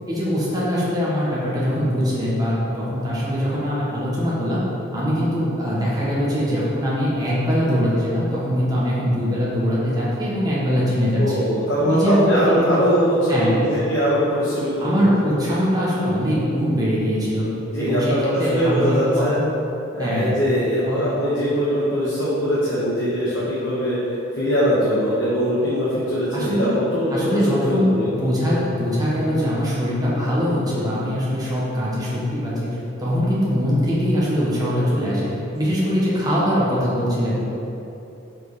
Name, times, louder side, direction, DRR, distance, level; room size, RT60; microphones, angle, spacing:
voice 1, 0.1-4.6 4.9-11.4 11.8-12.8 13.3-13.6 14.8-17.5 17.8-19.5 20.0-20.3 20.8-21.0 26.3-26.7 27.1-35.3 35.5-37.4, equal, 20° right, -8 dB, 1.1 m, -22 dB
voice 2, 11.2-15.1 17.7-19.4 19.9-24.0 24.3-28.1, equal, 60° left, -9 dB, 1.1 m, -21 dB
5.1 x 4.7 x 4.7 m, 2.9 s
head